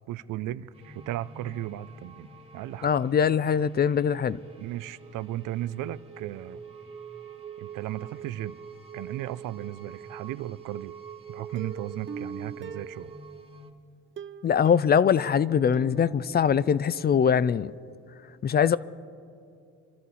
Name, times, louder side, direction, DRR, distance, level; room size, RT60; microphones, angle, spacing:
voice 1, 0.1-2.9 4.6-6.6 7.6-8.6 8.9-10.9 11.3-13.1, right 14 dB, 90° right, 0.5 m, -35 dB
sound 1, 0.7-13.7, right 6 dB, 20° right, 1.5 m, -46 dB
voice 2, 2.8-4.4 14.4-17.7 18.4-18.8, left 7 dB, 35° left, 0.4 m, -22 dB
Plucked string instrument, 11.5-13.5 14.2-16.9 17.3-17.4 17.7-17.8, right 5 dB, 40° right, 0.6 m, -42 dB
25.5 x 12.5 x 4.1 m
cardioid pair, 90°, 30 cm